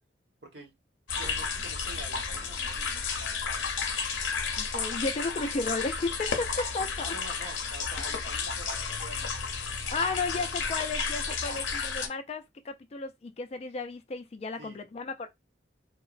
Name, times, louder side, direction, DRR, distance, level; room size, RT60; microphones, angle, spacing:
voice 1, 0.4-0.7 1.1-3.1 7.0-9.3 10.3-10.5 11.5-11.6 14.6-14.8, right 1 dB, 65° right, 0.9 m, -47 dB
sound 1, 1.1-12.1, left 5 dB, 80° left, 0.6 m, -32 dB
voice 2, 4.6-7.1 9.9-15.3, left 3 dB, 35° left, 0.3 m, -34 dB
3.0 x 2.0 x 2.4 m
head